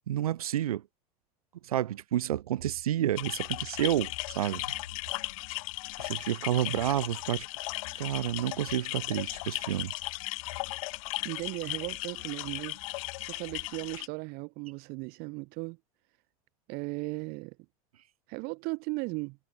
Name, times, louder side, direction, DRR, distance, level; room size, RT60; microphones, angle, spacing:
voice 1, 0.1-0.8 1.6-4.6 6.0-7.5 7.9-9.9, right 12 dB, 90° right, 2.7 m, -30 dB
sound 1, 3.2-14.1, left 23 dB, 70° left, 7.3 m, -36 dB
voice 2, 11.2-15.8 16.7-17.6 18.3-19.4, right 28 dB, 60° right, 6.5 m, -37 dB
hypercardioid pair, 100°, 18 cm